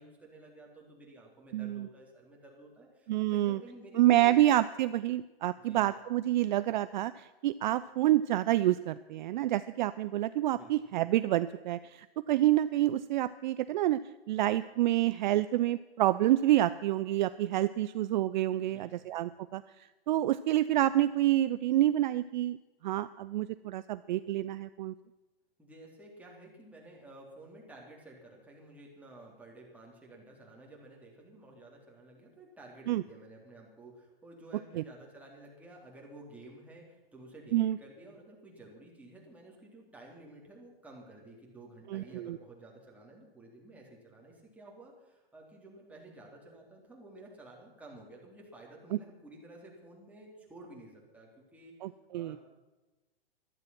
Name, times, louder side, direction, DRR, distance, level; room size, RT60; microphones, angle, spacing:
voice 1, 0.0-4.4 5.6-5.9 10.5-10.9 18.6-19.1 25.6-51.7 52.1-52.4, right 2 dB, 5° right, -2 dB, 3.8 m, -52 dB
voice 2, 1.5-1.9 3.1-3.6 4.0-14.0 14.3-19.6 20.1-22.6 22.8-24.9 32.9-33.0 34.8-34.9 37.5-37.8 41.9-42.4 51.8-52.4, right 14 dB, 50° right, 14 dB, 0.5 m, -28 dB
15.0 x 12.5 x 6.1 m, 1.1 s
hypercardioid pair, 125°, 30 cm